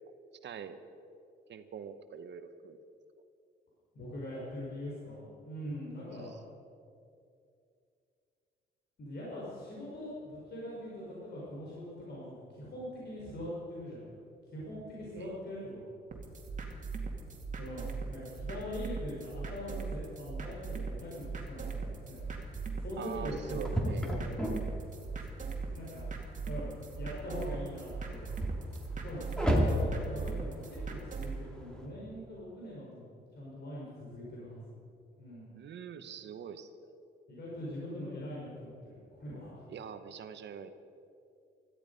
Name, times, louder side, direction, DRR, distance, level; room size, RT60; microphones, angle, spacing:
voice 1, 0.4-0.8 1.5-2.8 6.1-6.3 15.1-15.4 23.0-24.1 35.5-36.7 39.7-40.7, right 7 dB, 65° right, 10 dB, 1.0 m, -44 dB
voice 2, 3.9-6.3 9.0-14.1 14.5-15.9 17.5-22.3 22.7-24.4 25.7-26.1 26.4-28.5 29.0-34.6 35.2-35.5 37.3-39.6, left 1 dB, 55° left, -6 dB, 4.5 m, -42 dB
sound 1, 16.1-31.4, right 4 dB, 40° right, 2.4 m, -40 dB
sound 2, 22.2-31.9, equal, 5° left, 2.5 m, -36 dB
16.5 x 13.0 x 5.3 m, 2.5 s
cardioid pair, 90°, 20 cm